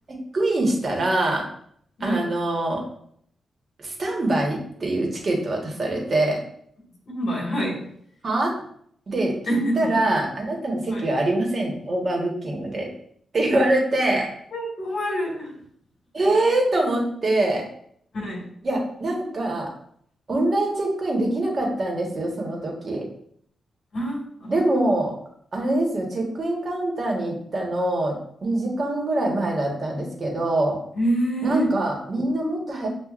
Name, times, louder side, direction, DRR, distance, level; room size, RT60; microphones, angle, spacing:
voice 1, 0.1-1.4 2.0-2.8 3.8-6.4 8.2-8.5 9.1-12.9 13.3-14.3 16.1-17.6 18.6-19.7 20.3-23.0 24.5-25.1 25.5-30.8 31.4-32.9, right 1 dB, 40° right, 0 dB, 1.2 m, -24 dB
voice 2, 7.1-7.9 9.5-9.8 10.9-11.1 14.5-15.6 18.1-18.4 23.9-24.5 30.9-31.7, right 1 dB, 60° left, -3 dB, 1.8 m, -26 dB
7.2 x 2.4 x 2.5 m, 0.65 s
wide cardioid pair, 120°, 0 cm